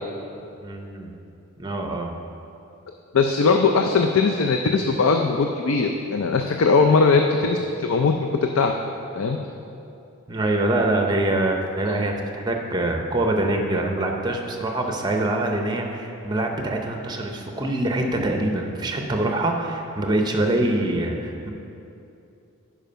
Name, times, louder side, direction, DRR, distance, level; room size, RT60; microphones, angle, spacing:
voice 1, 0.6-1.1 1.6-2.1 10.3-21.5, right 1 dB, 20° right, 2 dB, 0.6 m, -24 dB
voice 2, 3.1-8.7 9.1-9.4, left 4 dB, 70° left, 4 dB, 0.4 m, -20 dB
10.5 x 5.0 x 5.6 m, 2.7 s
head